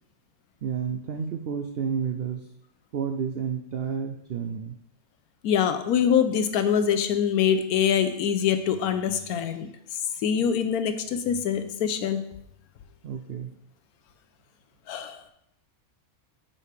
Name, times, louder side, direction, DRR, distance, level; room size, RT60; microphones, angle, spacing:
voice 1, 0.6-2.5 2.9-4.8 13.0-13.6, right 7 dB, 75° right, 4 dB, 0.5 m, -31 dB
voice 2, 5.4-9.7 10.2-12.2 14.9-15.2, left 8 dB, 85° left, 9 dB, 1.1 m, -24 dB
8.7 x 5.0 x 3.3 m, 0.78 s
omnidirectional pair, 1.5 m